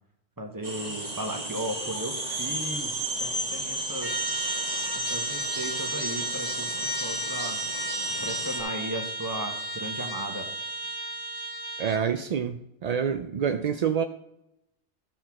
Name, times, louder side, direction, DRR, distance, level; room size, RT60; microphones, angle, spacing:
voice 1, 0.4-4.1 4.9-6.7 7.0-7.6 8.2-10.5, right 1 dB, 20° right, 3 dB, 1.2 m, -36 dB
sound 1, 0.6-8.6, right 1 dB, 35° right, 1.6 m, -33 dB
Trumpet, 4.0-12.1, right 1 dB, 25° left, 0.6 m, -34 dB
voice 2, 11.8-14.0, right 7 dB, 60° right, 8 dB, 0.4 m, -27 dB
13.0 x 4.4 x 6.0 m, 0.88 s
omnidirectional pair, 1.2 m